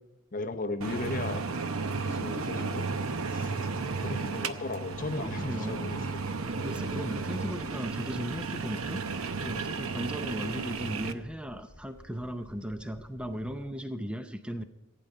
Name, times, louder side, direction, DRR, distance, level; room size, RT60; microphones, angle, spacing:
voice 1, 0.3-1.5 2.0-2.9 3.2-6.3 6.9-7.1, left 2 dB, 35° left, 9 dB, 0.7 m, -36 dB
sound 1, 0.8-11.1, right 4 dB, 75° right, 0.7 m, -33 dB
voice 2, 3.4-4.2 5.0-5.9 6.5-14.6, equal, 5° right, 8 dB, 0.5 m, -37 dB
sound 2, 4.9-13.7, left 1 dB, 15° left, 2.3 m, -55 dB
16.0 x 9.3 x 5.5 m, 0.97 s
head